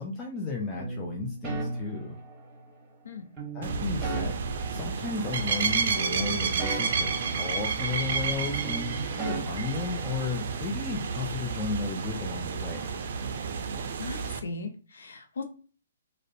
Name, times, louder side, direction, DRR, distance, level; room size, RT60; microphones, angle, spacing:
voice 1, 0.0-2.2 3.5-4.4 4.7-13.0, left 4 dB, 20° left, -1 dB, 0.4 m, -34 dB
sound 1, 0.8-2.8 3.4-5.7 5.9-8.3 8.5-10.6, right 3 dB, 20° right, 1.0 m, -38 dB
sound 2, 3.6-14.4, right 5 dB, 55° right, 0.4 m, -31 dB
voice 2, 14.0-15.4, left 3 dB, 70° left, 5 dB, 0.6 m, -38 dB
2.5 x 2.1 x 2.5 m, 0.38 s
hypercardioid pair, 135°, 0 cm